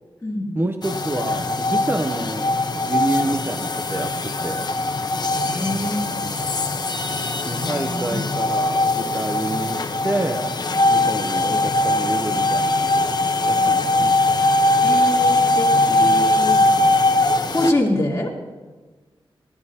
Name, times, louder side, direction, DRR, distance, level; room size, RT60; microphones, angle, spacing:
voice 1, 0.5-2.6 2.9-4.7 7.4-10.6 10.9-13.2 13.4-14.2, right 2 dB, 25° right, 7 dB, 0.6 m, -28 dB
sound 1, 0.8-17.7, left 2 dB, 45° left, 0.9 m, -21 dB
voice 2, 5.3-6.0 7.5-8.2 11.5-11.6 14.8-16.6 17.5-18.3, left 1 dB, 30° left, -3 dB, 3.1 m, -25 dB
25.5 x 14.5 x 2.8 m, 1.3 s
wide cardioid pair, 125°, 10 cm